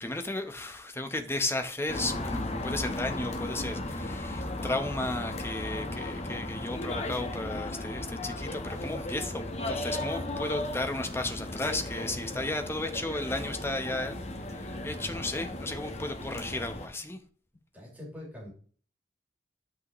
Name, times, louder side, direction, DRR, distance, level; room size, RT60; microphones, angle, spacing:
voice 1, 0.0-14.2 14.5-17.2, left 2 dB, 15° left, 0.9 m, -34 dB
sound 1, 1.9-16.9, left 1 dB, 35° left, 1.1 m, -36 dB
voice 2, 17.7-18.5, left 1 dB, 10° right, 4.3 m, -43 dB
11.0 x 5.7 x 3.1 m
head